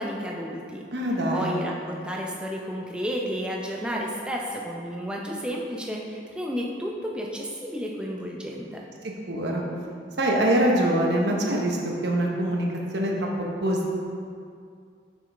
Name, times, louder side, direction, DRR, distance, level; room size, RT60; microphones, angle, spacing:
voice 1, 0.0-0.9 1.3-8.9, equal, 5° right, -2 dB, 0.6 m, -32 dB
voice 2, 0.9-1.5 9.0-9.6 10.2-12.7 12.9-13.9, right 1 dB, 65° right, -1 dB, 0.9 m, -24 dB
6.2 x 5.9 x 3.4 m, 2.3 s
head